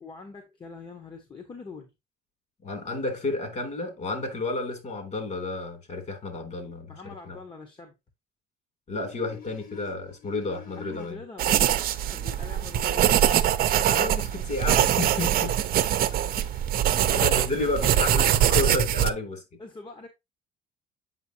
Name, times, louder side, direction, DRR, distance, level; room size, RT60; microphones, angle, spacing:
voice 1, 0.0-1.9 6.9-8.0 10.7-13.1 14.9-15.2 16.9-17.4 19.6-20.1, left 4 dB, 30° left, 1.6 m, -44 dB
voice 2, 2.6-6.9 7.3-7.4 8.9-11.2 13.8-15.5 17.1-19.4, left 2 dB, 45° left, 3.5 m, -31 dB
sound 1, 9.0-11.1 11.9-18.2, left 7 dB, 65° left, 4.2 m, -51 dB
sound 2, 11.4-19.1, right 11 dB, 60° right, 0.8 m, -23 dB
8.1 x 5.8 x 2.9 m
cardioid pair, 110°, 17 cm